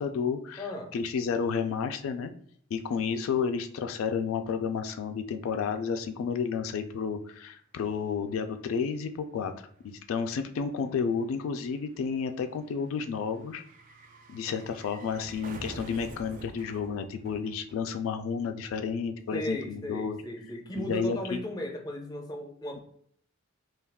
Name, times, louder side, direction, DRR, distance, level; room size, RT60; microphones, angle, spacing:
voice 1, 0.0-0.7 0.9-2.3 2.7-9.5 9.8-13.6 14.3-20.2 20.8-21.4, left 6 dB, 85° left, 7 dB, 0.3 m, -31 dB
voice 2, 0.6-0.9 19.3-22.8, left 1 dB, 20° left, 3 dB, 0.5 m, -36 dB
sound 1, 7.5-7.6 7.8-18.2 18.4-18.5, right 2 dB, 40° right, 0.4 m, -50 dB
2.3 x 2.3 x 3.4 m, 0.65 s
head